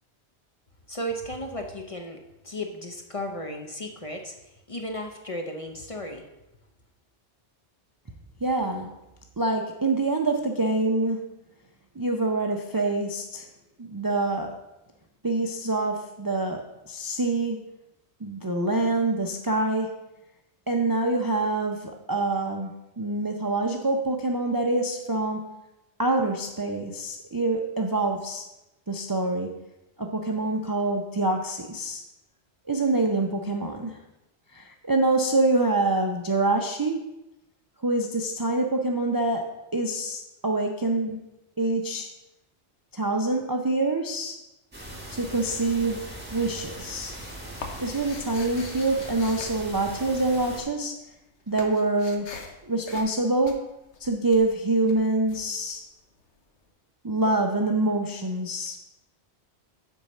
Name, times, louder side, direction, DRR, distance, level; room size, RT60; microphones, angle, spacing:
voice 1, 0.9-4.3 4.7-6.2, equal, 35° left, 3 dB, 0.7 m, -35 dB
voice 2, 8.4-8.9 9.4-11.2 12.0-13.5 13.8-14.5 15.2-17.6 18.2-19.9 20.7-22.7 23.0-25.5 26.0-28.5 28.9-29.5 30.0-32.0 32.7-34.0 34.5-37.0 37.8-41.2 41.6-42.1 42.9-44.4 45.1-47.2 47.8-51.0 51.5-52.3 52.6-53.6 54.0-55.8 57.0-58.8, right 2 dB, 30° right, 3 dB, 0.4 m, -26 dB
sound 1, 44.7-50.6, right 1 dB, 10° right, 1.5 m, -40 dB
sound 2, 46.0-46.2 46.5-50.5 50.8-56.4, left 3 dB, 80° left, 1.2 m, -44 dB
7.2 x 4.5 x 6.4 m, 0.94 s
omnidirectional pair, 1.2 m